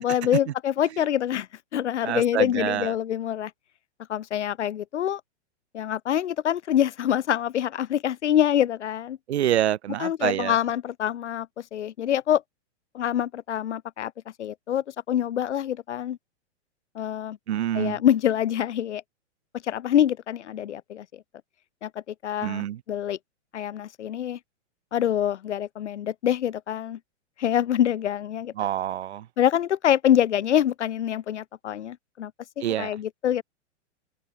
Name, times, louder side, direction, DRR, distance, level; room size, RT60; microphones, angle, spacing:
voice 1, 0.0-3.5 4.1-5.2 5.7-9.2 10.0-12.4 12.9-14.1 14.4-16.2 16.9-17.4 17.7-19.0 19.6-21.2 21.8-23.2 23.5-24.4 24.9-27.0 27.4-28.5 29.4-33.4, left 10 dB, 75° left, 4.4 m, -25 dB
voice 2, 2.0-2.9 9.3-10.6 17.5-18.0 22.4-22.8 28.6-29.2 32.6-32.9, right 11 dB, 65° right, 2.8 m, -26 dB
open air
hypercardioid pair, 165°, 35 cm